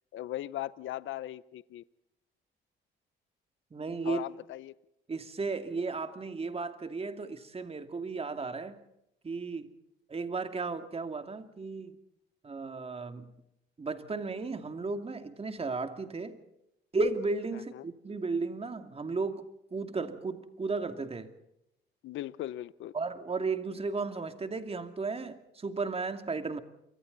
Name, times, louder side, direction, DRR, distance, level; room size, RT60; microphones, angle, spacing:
voice 1, 0.1-1.8 4.0-4.7 17.5-17.9 22.0-22.9, left 14 dB, 75° left, 17 dB, 0.8 m, -38 dB
voice 2, 3.7-4.2 5.1-8.8 9.2-9.7 10.1-12.0 12.4-13.3 13.8-16.4 16.9-19.5 19.7-21.3 22.9-26.6, right 3 dB, 30° right, 7 dB, 2.6 m, -34 dB
29.0 x 25.0 x 4.1 m, 0.82 s
cardioid pair, 90°, 20 cm